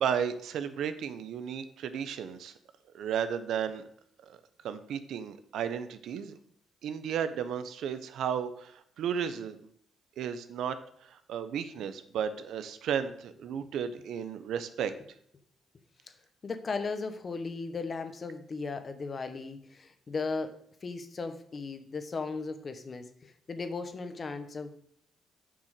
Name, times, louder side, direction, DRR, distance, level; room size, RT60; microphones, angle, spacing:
voice 1, 0.0-2.5 2.9-3.8 4.3-4.4 4.6-6.3 6.8-9.6 10.2-10.8 11.0-14.9, right 8 dB, 75° right, 11 dB, 0.8 m, -33 dB
voice 2, 16.4-24.7, left 4 dB, 40° left, 8 dB, 1.2 m, -36 dB
7.4 x 6.0 x 6.6 m, 0.68 s
cardioid pair, 90°, 0 cm